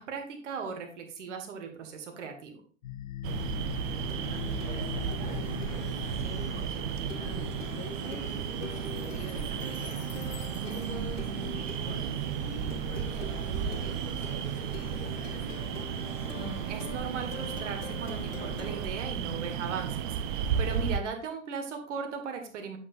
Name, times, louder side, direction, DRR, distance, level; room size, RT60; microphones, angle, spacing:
voice 1, 0.0-2.6 16.3-22.8, right 5 dB, 60° right, 4 dB, 1.8 m, -38 dB
Plucked string instrument, 2.8-18.9, left 9 dB, 70° left, 0.7 m, -43 dB
sound 1, 3.2-21.0, right 8 dB, 40° right, 0.7 m, -34 dB
voice 2, 3.8-10.0 10.4-15.6 20.6-20.7, left 3 dB, 15° left, -2 dB, 2.9 m, -47 dB
8.4 x 7.7 x 2.6 m, 0.42 s
figure-of-eight pair, 100°, 41 cm